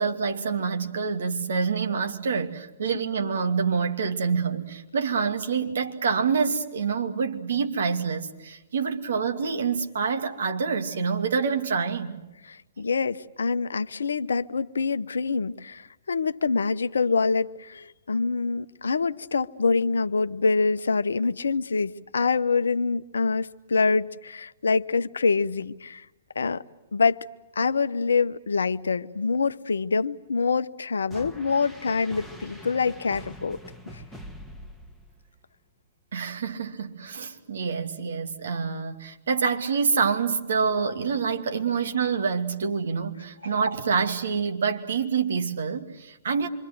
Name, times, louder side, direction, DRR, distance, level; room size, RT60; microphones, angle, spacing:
voice 1, 0.0-12.2 36.1-46.5, right 5 dB, 60° right, 2.6 m, -27 dB
voice 2, 12.4-26.0 26.3-26.6 26.9-27.2 27.6-33.6 33.9-34.0, left 4 dB, 70° left, 0.9 m, -25 dB
sound 1, 31.1-35.4, equal, ahead, 1.7 m, -43 dB
27.0 x 25.0 x 7.8 m
figure-of-eight pair, 115°, 0 cm